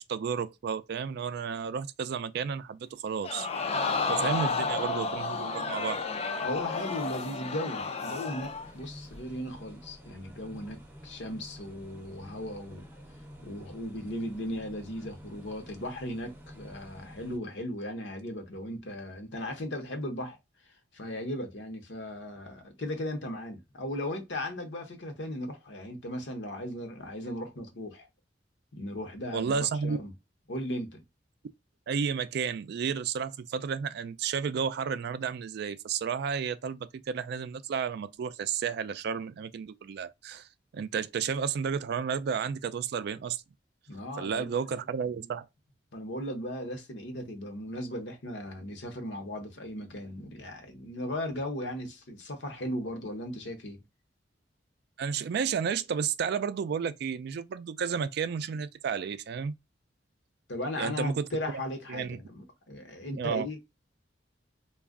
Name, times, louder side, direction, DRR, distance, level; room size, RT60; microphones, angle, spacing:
voice 1, 0.0-3.5 4.1-6.0 29.3-30.0 31.9-40.5 40.7-43.4 44.2-45.5 55.0-59.5 60.8-61.3 61.9-62.2 63.2-63.5, right 6 dB, 60° right, 0.3 m, -32 dB
Crowd, 3.2-8.7 9.1-9.2, left 4 dB, 35° left, 0.4 m, -31 dB
voice 2, 6.4-12.9 13.4-20.4 20.9-28.1 28.7-30.1 30.5-31.0 43.9-44.5 45.2-45.3 45.9-53.8 60.5-63.6, left 1 dB, 70° left, 0.9 m, -37 dB
sound 1, 8.3-17.4, equal, 10° right, 0.6 m, -50 dB
2.3 x 2.1 x 3.6 m
head